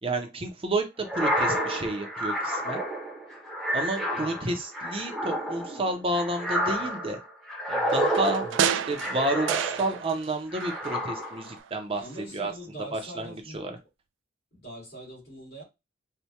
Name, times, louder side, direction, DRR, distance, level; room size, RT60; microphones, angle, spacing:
voice 1, 0.0-2.8 3.7-7.2 7.7-12.0 12.3-12.5 12.9-13.8, right 2 dB, 30° right, 0.6 m, -30 dB
sound 1, 1.0-10.1 10.5-11.5, equal, ahead, 0.8 m, -30 dB
voice 2, 4.1-4.5 8.3-8.7 12.0-13.7 14.5-15.6, right 1 dB, 55° left, 2.3 m, -43 dB
sound 2, 7.9-10.3 10.6-11.7 12.0-12.1, right 8 dB, 75° right, 0.3 m, -31 dB
4.4 x 2.1 x 2.8 m
head